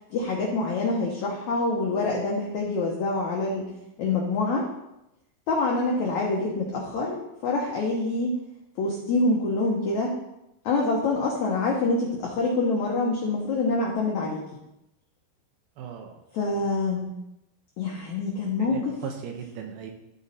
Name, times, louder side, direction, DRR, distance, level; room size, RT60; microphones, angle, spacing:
voice 1, 0.1-3.7 4.0-4.7 5.5-8.4 8.8-10.1 10.6-14.4 16.3-17.1 17.8-18.9, left 3 dB, 80° left, -2 dB, 1.7 m, -26 dB
voice 2, 15.8-16.2 18.6-19.9, right 7 dB, 75° right, 3 dB, 2.5 m, -37 dB
12.5 x 4.2 x 4.1 m, 0.88 s
omnidirectional pair, 4.8 m